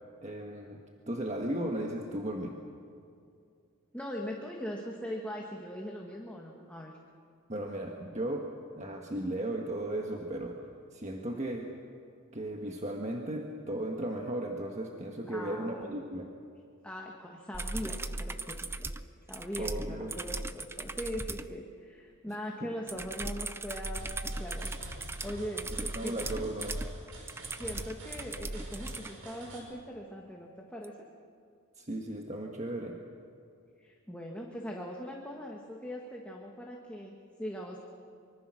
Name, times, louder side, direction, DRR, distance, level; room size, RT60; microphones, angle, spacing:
voice 1, 0.2-0.8 1.1-2.6 7.5-10.6 10.9-11.7 12.3-16.3 19.6-20.1 22.3-22.4 22.6-22.7 25.9-26.8 31.8-33.0, right 1 dB, 30° right, 1 dB, 1.5 m, -36 dB
voice 2, 3.9-6.9 15.3-15.9 16.8-18.9 19.3-24.7 25.2-25.7 26.0-26.1 27.6-31.0 33.8-37.8, equal, 5° left, -1 dB, 1.7 m, -40 dB
sound 1, 17.5-21.5 22.9-29.1 30.8-30.9, right 2 dB, 10° right, 0.5 m, -38 dB
sound 2, 24.0-29.6, right 1 dB, 90° right, 6.1 m, -47 dB
25.0 x 24.5 x 6.3 m, 2.4 s
head